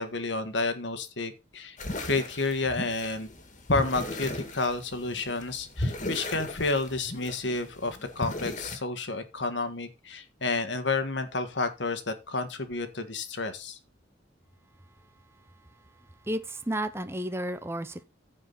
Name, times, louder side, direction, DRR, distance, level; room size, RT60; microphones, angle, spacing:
voice 1, 0.0-3.3 3.7-13.8, left 3 dB, 65° left, 1.7 m, -30 dB
sound 1, 1.8-8.8, left 1 dB, 40° left, 2.2 m, -36 dB
voice 2, 16.2-18.0, right 1 dB, 15° right, 0.7 m, -32 dB
15.0 x 5.0 x 4.0 m
head